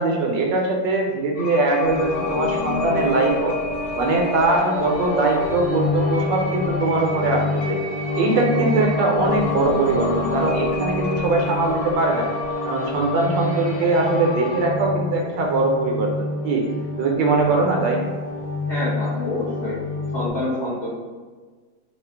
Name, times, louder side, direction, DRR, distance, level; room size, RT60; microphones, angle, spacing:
voice 1, 0.0-3.5 3.9-7.8 8.2-12.3 12.6-16.6 17.0-18.0, right 3 dB, 75° right, 0 dB, 1.2 m, -21 dB
sound 1, 1.4-14.7, left 3 dB, 90° left, 1.4 m, -34 dB
sound 2, 1.8-20.3, left 2 dB, 70° left, 1.2 m, -27 dB
voice 2, 18.7-19.8 20.1-21.0, left 1 dB, 50° left, -11 dB, 1.2 m, -27 dB
3.7 x 2.0 x 3.3 m, 1.4 s
omnidirectional pair, 2.1 m